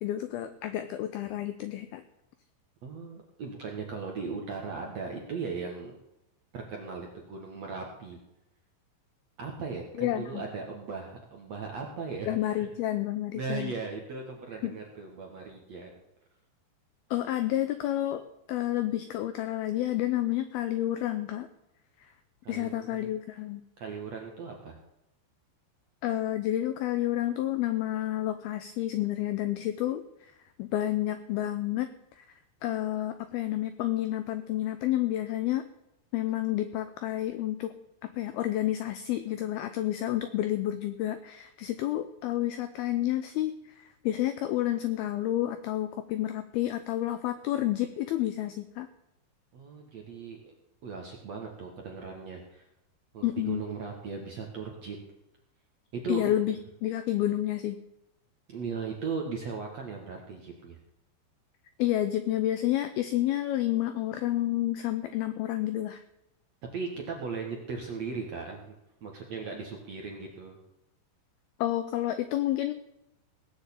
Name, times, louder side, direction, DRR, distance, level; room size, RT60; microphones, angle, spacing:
voice 1, 0.0-2.0 10.0-10.4 12.3-13.7 14.6-14.8 17.1-18.2 18.5-21.5 22.0-22.1 22.5-23.6 26.0-30.0 30.6-32.3 32.6-35.6 36.1-37.7 38.0-48.9 53.2-53.6 56.1-57.8 61.8-66.0 71.6-72.7, left 13 dB, 85° left, 10 dB, 2.1 m, -30 dB
voice 2, 2.8-6.0 6.5-8.2 9.4-12.7 13.3-15.9 22.4-23.1 23.8-24.8 49.5-50.5 50.8-52.7 53.1-55.0 55.9-56.3 58.5-60.8 66.7-68.7 69.0-70.6, right 5 dB, 60° right, 1 dB, 1.8 m, -37 dB
18.0 x 6.5 x 8.5 m, 0.88 s
omnidirectional pair, 5.3 m